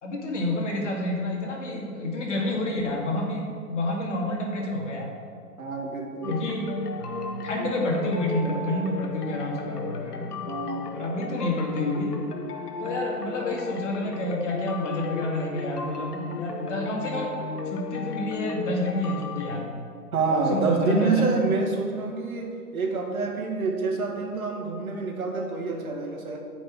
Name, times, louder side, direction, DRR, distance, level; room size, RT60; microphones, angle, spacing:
voice 1, 0.0-5.1 6.3-6.7 7.0-10.3 10.9-12.1 12.8-17.3 17.7-19.7 20.3-21.2, left 1 dB, 50° left, -1 dB, 2.6 m, -29 dB
voice 2, 5.6-6.4 10.5-10.9 20.1-26.4, right 3 dB, 60° right, 1 dB, 2.3 m, -27 dB
sound 1, 6.2-19.6, left 3 dB, 75° left, 1.2 m, -35 dB
9.7 x 6.1 x 7.7 m, 2.3 s
hypercardioid pair, 160°, 48 cm